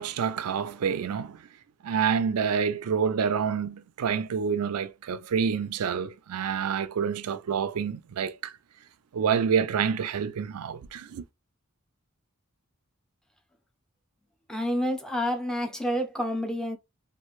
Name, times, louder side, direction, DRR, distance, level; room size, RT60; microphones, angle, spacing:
voice 1, 0.0-1.5 1.8-8.6 9.1-11.3, right 7 dB, 90° right, 0.4 m, -28 dB
voice 2, 14.5-16.8, equal, 5° left, 0.6 m, -28 dB
3.1 x 2.5 x 2.4 m
head